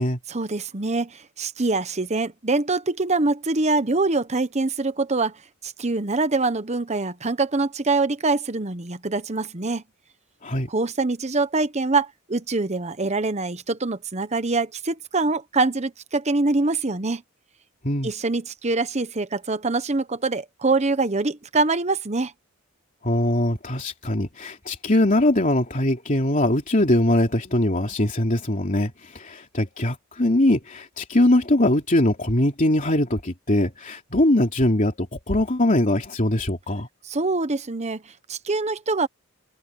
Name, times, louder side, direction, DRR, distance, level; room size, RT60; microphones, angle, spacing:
voice 1, 0.3-9.8 10.7-17.2 18.0-22.3 37.0-39.1, right 3 dB, 30° right, 1.0 m, -24 dB
voice 2, 23.0-36.9, left 1 dB, 40° left, 3.1 m, -21 dB
head